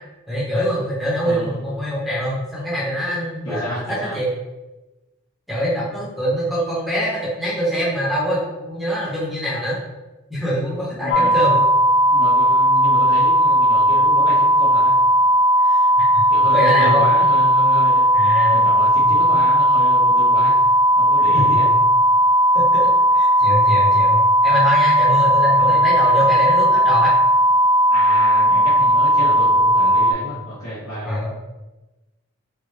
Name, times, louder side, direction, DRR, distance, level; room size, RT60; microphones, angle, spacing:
voice 1, 0.3-4.3 5.5-9.8 10.3-11.6 15.6-16.2 16.5-17.1 18.1-18.7 19.0-19.1 21.3-21.6 22.5-22.9 23.1-27.1 31.0-31.3, equal, ahead, -7 dB, 0.7 m, -24 dB
voice 2, 1.2-1.8 3.4-4.2 11.0-11.4 12.1-15.0 16.3-18.1 18.5-20.6 21.0-21.7 25.6-25.8 27.9-31.2, equal, 90° left, -13 dB, 1.2 m, -31 dB
sound 1, 11.1-30.1, equal, 45° left, 0.4 m, -16 dB
3.1 x 2.4 x 3.2 m, 1.1 s
head